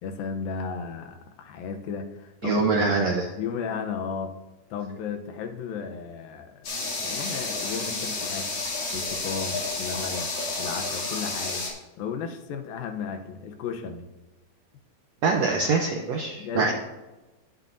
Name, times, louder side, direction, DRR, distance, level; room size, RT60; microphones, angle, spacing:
voice 1, 0.0-2.7 3.4-4.4 4.7-6.7 7.0-8.6 8.9-10.3 10.6-11.7 12.0-14.1 16.4-16.7, left 6 dB, 80° left, 5 dB, 2.7 m, -34 dB
voice 2, 2.4-3.3 15.2-16.7, right 4 dB, 80° right, 2 dB, 1.5 m, -24 dB
sound 1, 6.6-11.7, left 3 dB, 45° left, 3.8 m, -31 dB
18.5 x 8.1 x 2.7 m, 1.1 s
omnidirectional pair, 4.1 m